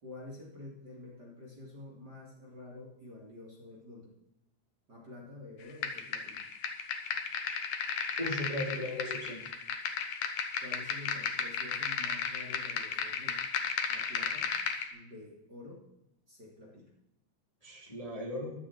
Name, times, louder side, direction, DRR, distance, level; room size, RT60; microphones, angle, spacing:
voice 1, 0.0-4.1 4.9-6.4 10.6-13.4 13.9-14.5 14.9-15.8 16.3-16.9, left 2 dB, 30° right, -3 dB, 3.2 m, -48 dB
sound 1, 5.8-14.9, left 6 dB, 60° left, 2.0 m, -34 dB
voice 2, 8.2-9.5 17.6-18.5, left 1 dB, 10° left, -3 dB, 2.9 m, -37 dB
15.0 x 12.0 x 4.4 m, 0.82 s
omnidirectional pair, 4.2 m